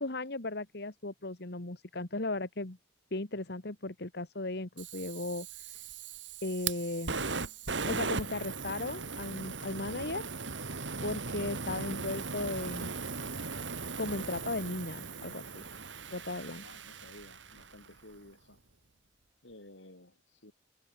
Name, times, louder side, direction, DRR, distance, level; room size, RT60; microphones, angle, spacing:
voice 1, 0.0-2.8 3.1-5.8 6.4-7.1 7.9-10.2 11.0-12.9 14.0-15.6 16.1-16.6, left 2 dB, 60° left, 1.9 m, -36 dB
Fire, 4.8-17.9, right 4 dB, 80° right, 2.9 m, -38 dB
voice 2, 16.6-18.6 19.4-20.5, left 1 dB, 80° left, 6.7 m, -54 dB
head